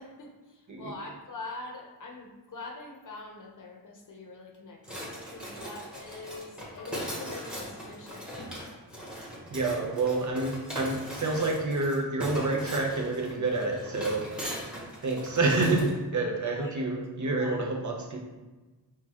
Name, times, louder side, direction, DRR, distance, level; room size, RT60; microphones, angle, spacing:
voice 1, 0.0-8.6 16.4-16.7 17.4-17.7, left 3 dB, 45° left, 0 dB, 0.8 m, -44 dB
sound 1, 4.8-16.0, equal, ahead, 1.1 m, -39 dB
voice 2, 9.5-14.3 15.0-18.2, right 3 dB, 45° right, 0 dB, 0.7 m, -28 dB
6.3 x 2.3 x 2.9 m, 1.2 s
wide cardioid pair, 125°, 43 cm